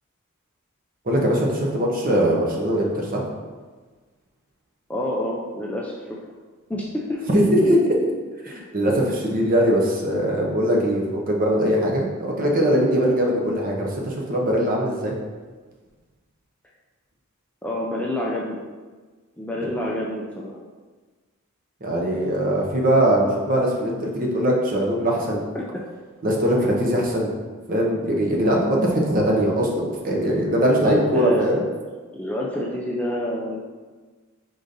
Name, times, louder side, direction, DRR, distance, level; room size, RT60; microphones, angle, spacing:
voice 1, 1.1-3.2 7.3-8.0 8.4-15.1 19.6-19.7 21.8-25.4 26.2-27.3 27.7-31.6, equal, 40° right, -1 dB, 0.8 m, -21 dB
voice 2, 4.9-6.0 6.7-7.2 8.5-8.6 17.6-18.6 19.4-20.6 26.6-26.7 30.8-31.7 32.1-33.6, left 1 dB, 5° left, -4 dB, 0.4 m, -28 dB
4.9 x 3.8 x 2.6 m, 1.4 s
head